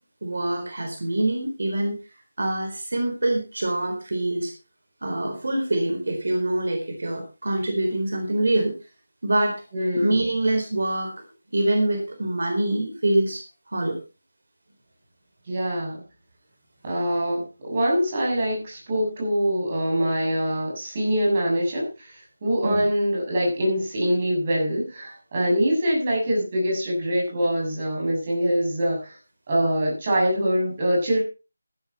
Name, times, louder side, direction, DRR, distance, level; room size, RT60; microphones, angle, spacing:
voice 1, 0.2-2.0 2.4-4.5 5.0-8.8 9.2-9.6 9.9-11.2 11.5-13.4 13.7-14.0 22.6-22.8, right 1 dB, 65° right, 4 dB, 4.2 m, -25 dB
voice 2, 9.7-10.2 15.4-16.0 16.8-29.2 29.5-31.2, equal, 30° right, -2 dB, 7.3 m, -24 dB
15.0 x 11.0 x 4.2 m, 0.31 s
figure-of-eight pair, 170°, 0 cm